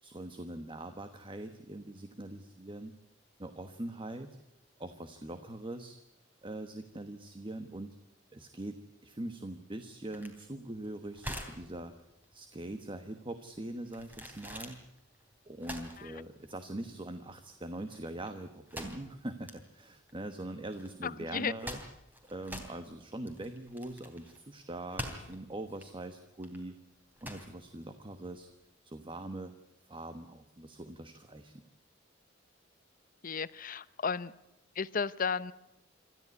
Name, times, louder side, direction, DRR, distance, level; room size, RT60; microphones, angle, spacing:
voice 1, 0.0-2.9 3.4-4.4 4.8-6.0 6.4-8.0 8.3-11.9 12.3-14.8 15.5-21.8 22.3-26.8 27.2-28.5 28.8-29.5 29.9-31.6, right 1 dB, 25° right, 9 dB, 1.2 m, -42 dB
sound 1, 10.1-28.6, equal, 10° right, 3.1 m, -46 dB
voice 2, 21.0-21.5 33.2-34.3 34.8-35.5, left 5 dB, 45° left, 16 dB, 0.8 m, -34 dB
26.5 x 14.0 x 9.7 m, 0.88 s
head